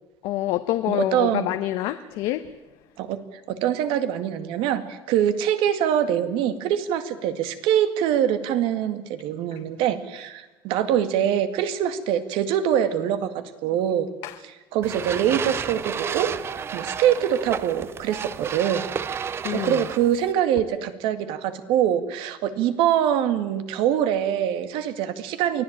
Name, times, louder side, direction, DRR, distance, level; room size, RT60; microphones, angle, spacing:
voice 1, 0.2-2.5 14.2-14.3 19.4-19.8, left 14 dB, 70° left, 9 dB, 1.0 m, -26 dB
voice 2, 0.9-1.5 3.0-14.1 14.7-16.3 16.7-18.9 19.5-25.6, right 10 dB, 70° right, 10 dB, 2.1 m, -24 dB
sound 1, 14.8-20.3, right 7 dB, 25° right, 0.7 m, -31 dB
24.5 x 16.0 x 8.8 m, 1.1 s
cardioid pair, 165°, 9 cm